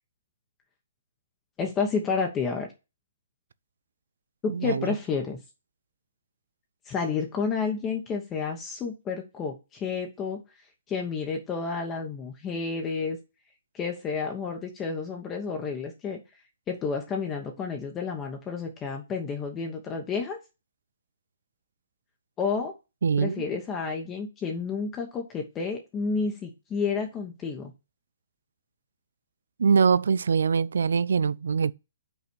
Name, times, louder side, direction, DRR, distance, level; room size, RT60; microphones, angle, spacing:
voice 1, 1.6-2.7 4.4-5.4 6.9-10.4 10.9-13.2 13.7-16.2 16.7-20.4 22.4-22.7 23.2-27.7, left 5 dB, 15° left, 1.0 m, -30 dB
voice 2, 4.5-4.9 23.0-23.4 29.6-31.7, right 6 dB, 75° right, 0.4 m, -23 dB
5.6 x 4.2 x 6.1 m
hypercardioid pair, 160°, 0 cm